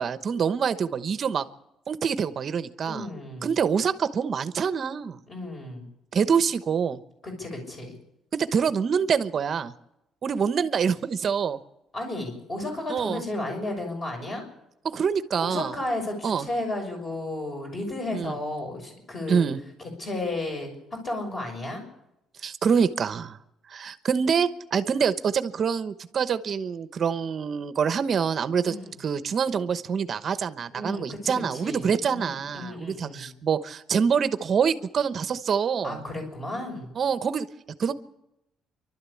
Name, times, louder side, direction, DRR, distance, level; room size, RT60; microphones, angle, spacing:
voice 1, 0.0-1.4 1.9-3.1 3.4-5.2 6.1-7.0 8.3-9.7 10.2-11.6 12.9-13.2 14.8-15.7 16.2-16.5 18.1-18.4 19.3-19.6 22.4-23.4 23.7-28.7 29.0-36.0 37.0-37.5 37.8-37.9, right 6 dB, 35° right, 12 dB, 1.0 m, -25 dB
voice 2, 2.8-3.5 5.3-5.9 7.2-8.0 11.9-14.5 15.4-19.5 19.8-20.7 21.0-21.8 28.6-29.0 30.7-33.3 35.8-36.9, left 1 dB, 25° left, 3 dB, 6.4 m, -33 dB
29.0 x 12.5 x 8.5 m, 0.87 s
cardioid pair, 160°, 0 cm